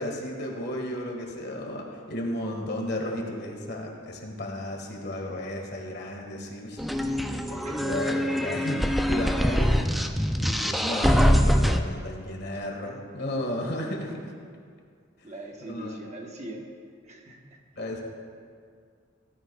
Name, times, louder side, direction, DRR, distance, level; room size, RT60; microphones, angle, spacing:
voice 1, 0.0-9.9 10.4-14.3 15.7-16.0 17.7-18.0, left 1 dB, 55° left, 1 dB, 1.7 m, -34 dB
sound 1, 6.8-11.8, equal, ahead, 0.4 m, -23 dB
voice 2, 15.2-16.7 17.0-17.6, right 1 dB, 35° right, 1 dB, 1.2 m, -41 dB
16.5 x 14.0 x 2.3 m, 2.1 s
head